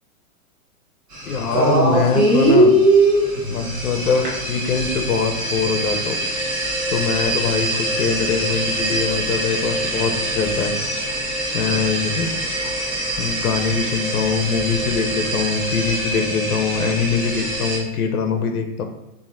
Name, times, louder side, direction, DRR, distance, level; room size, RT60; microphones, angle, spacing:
sound 1, 1.1-17.8, right 1 dB, 25° right, 1.0 m, -22 dB
voice 1, 1.3-2.7 3.5-6.2 6.9-10.7 11.5-12.3 13.2-18.8, left 5 dB, 85° left, 5 dB, 0.7 m, -23 dB
6.9 x 2.7 x 2.5 m, 0.96 s
hypercardioid pair, 140°, 43 cm